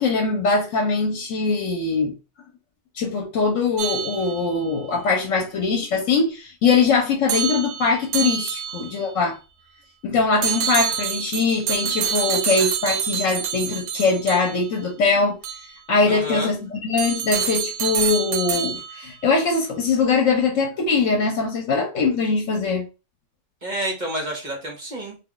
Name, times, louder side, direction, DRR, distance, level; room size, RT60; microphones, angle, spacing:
voice 1, 0.0-2.1 2.9-9.4 10.0-15.4 15.9-22.9, left 4 dB, 75° left, 1 dB, 1.0 m, -22 dB
sound 1, 3.8-4.7 7.3-9.0 10.4-14.8 15.4-15.6 17.0-19.1, right 7 dB, 70° right, 1.0 m, -27 dB
voice 2, 16.0-16.5 23.6-25.2, right 1 dB, 40° right, -1 dB, 0.9 m, -29 dB
2.5 x 2.3 x 3.7 m, 0.30 s
omnidirectional pair, 1.3 m